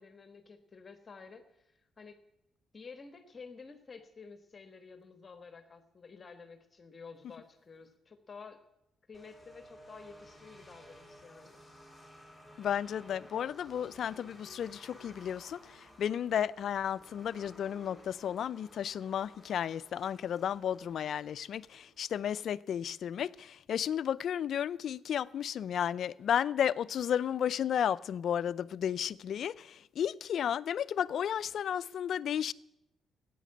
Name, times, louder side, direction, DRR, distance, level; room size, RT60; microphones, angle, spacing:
voice 1, 0.0-2.2 2.7-8.6 9.1-11.6, left 5 dB, 35° left, 1.3 m, -51 dB
sound 1, 9.1-22.2, equal, ahead, 4.7 m, -56 dB
voice 2, 12.6-32.5, left 9 dB, 65° left, 0.4 m, -33 dB
13.5 x 9.2 x 8.7 m
cardioid pair, 90°, 0 cm